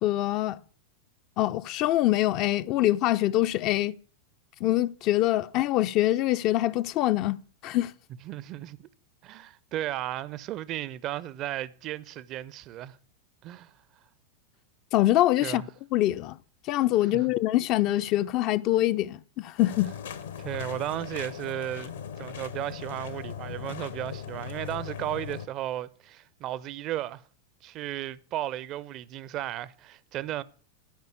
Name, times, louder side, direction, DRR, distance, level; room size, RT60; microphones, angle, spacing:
voice 1, 0.0-0.6 1.4-3.9 4.6-7.9 14.9-15.6 15.9-16.4 16.7-19.9, left 15 dB, 40° left, 0.4 m, -24 dB
voice 2, 8.2-8.9 9.2-13.0 13.4-13.7 15.4-15.7 17.0-17.3 20.4-21.9 22.2-27.2 27.6-30.4, right 13 dB, 35° right, 0.5 m, -35 dB
sound 1, 19.6-25.5, left 8 dB, 65° left, 1.0 m, -39 dB
12.0 x 5.5 x 9.0 m
figure-of-eight pair, 90°, 0 cm